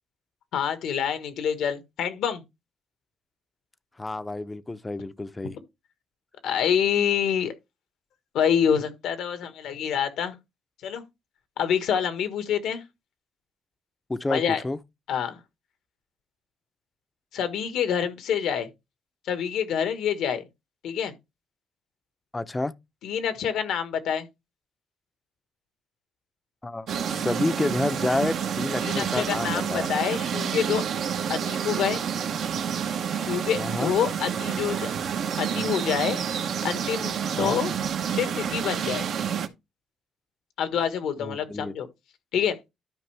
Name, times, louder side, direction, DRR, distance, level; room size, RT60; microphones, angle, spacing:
voice 1, 0.5-2.4 6.4-7.5 8.3-10.4 10.8-11.0 11.6-12.8 14.3-14.6 15.1-15.4 17.3-18.7 19.2-20.4 20.8-21.1 23.0-24.3 28.8-30.8 31.3-32.0 33.2-34.9 35.4-36.2 36.6-37.7 38.1-39.1 40.6-41.9 42.3-42.6, left 8 dB, 80° left, 1.5 m, -27 dB
voice 2, 4.0-5.6 14.1-14.8 22.3-22.7 26.6-29.9 33.6-33.9 37.4-37.6 41.2-41.7, left 2 dB, 20° left, 0.6 m, -29 dB
sound 1, 26.9-39.5, right 8 dB, 70° right, 1.1 m, -29 dB
12.5 x 5.3 x 3.4 m
cardioid pair, 90°, 0 cm